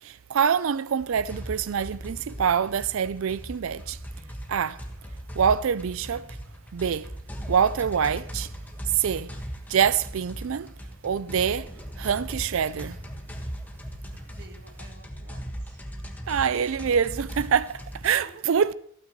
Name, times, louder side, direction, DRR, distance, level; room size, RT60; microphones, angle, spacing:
voice 1, 0.0-4.0 4.5-4.8 5.3-6.3 6.7-7.1 7.5-8.5 8.9-9.4 9.7-10.7 11.0-11.7 12.0-13.0 16.3-18.7, right 7 dB, 70° right, 0.4 m, -25 dB
sound 1, 1.1-18.2, equal, 10° left, 1.4 m, -38 dB
voice 2, 14.3-15.9 18.1-18.4, right 3 dB, 50° right, 1.5 m, -50 dB
27.0 x 9.3 x 3.0 m
head